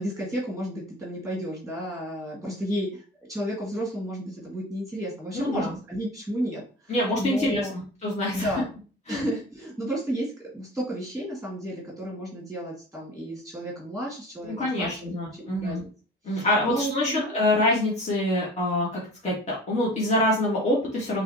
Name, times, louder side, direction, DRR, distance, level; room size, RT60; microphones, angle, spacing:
voice 1, 0.0-3.0 3.3-7.7 8.3-8.7 9.1-15.0 15.3-15.9 16.3-17.4, equal, ahead, -4 dB, 2.1 m, -32 dB
voice 2, 5.3-5.7 6.9-8.5 9.1-9.3 14.4-15.8 16.2-21.2, left 1 dB, 35° left, -6 dB, 2.1 m, -25 dB
5.5 x 3.4 x 2.8 m, 0.37 s
cardioid pair, 90°, 20 cm